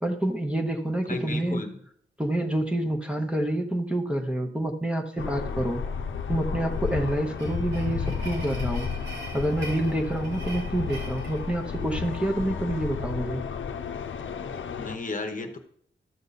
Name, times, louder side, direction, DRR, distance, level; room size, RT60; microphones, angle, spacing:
voice 1, 0.0-1.6 2.2-5.8 6.3-8.9 9.3-13.4, right 1 dB, 5° right, 1 dB, 0.8 m, -27 dB
voice 2, 1.1-1.8 14.7-15.6, left 3 dB, 40° left, 6 dB, 0.9 m, -34 dB
sound 1, 5.2-15.0, left 6 dB, 75° left, 0.7 m, -33 dB
sound 2, 6.7-12.2, right 2 dB, 70° right, 3.0 m, -43 dB
12.5 x 6.9 x 4.0 m, 0.68 s
wide cardioid pair, 165°, 20 cm